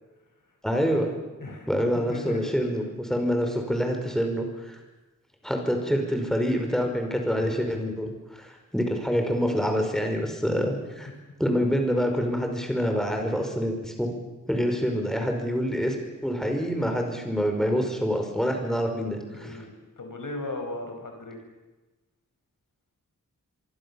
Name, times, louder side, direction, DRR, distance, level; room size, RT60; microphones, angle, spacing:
voice 1, 0.6-1.1 1.7-4.8 5.4-11.1 11.4-14.1 14.5-16.0 16.2-19.6, equal, ahead, 3 dB, 5.3 m, -26 dB
voice 2, 19.3-21.4, left 2 dB, 85° left, 4 dB, 5.5 m, -36 dB
25.5 x 24.0 x 7.2 m, 1.1 s
wide cardioid pair, 85°, 31 cm